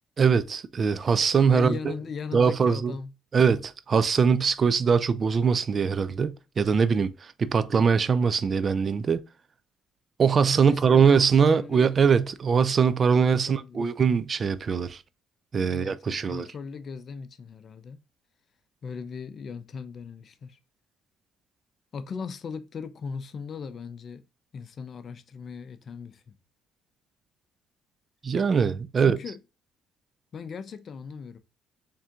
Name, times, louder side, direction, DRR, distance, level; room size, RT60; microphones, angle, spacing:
voice 1, 0.2-1.9 2.3-2.9 3.3-9.2 10.2-15.0 15.5-16.5 28.2-29.2, right 6 dB, 40° right, 0.4 m, -22 dB
voice 2, 1.5-3.1 10.6-11.9 13.2-13.9 15.6-18.0 18.8-20.6 21.9-24.2 24.5-26.4 29.0-29.4 30.3-31.4, left 5 dB, 45° left, 0.6 m, -38 dB
4.3 x 3.6 x 2.4 m
cardioid pair, 95°, 0 cm